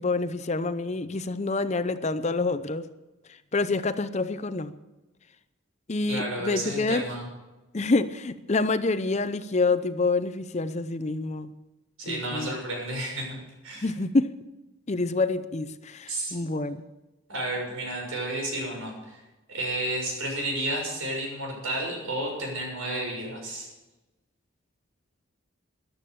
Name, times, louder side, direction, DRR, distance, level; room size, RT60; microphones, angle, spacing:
voice 1, 0.0-2.9 3.5-4.7 5.9-7.0 7.7-11.5 12.1-12.6 13.8-14.3 14.9-16.8, left 3 dB, 30° left, 12 dB, 0.6 m, -27 dB
voice 2, 6.1-7.3 12.0-13.4 13.6-13.9 16.1-16.5 17.3-19.2 19.5-23.7, right 1 dB, 90° right, 0 dB, 6.8 m, -31 dB
14.0 x 12.0 x 6.9 m, 1.1 s
head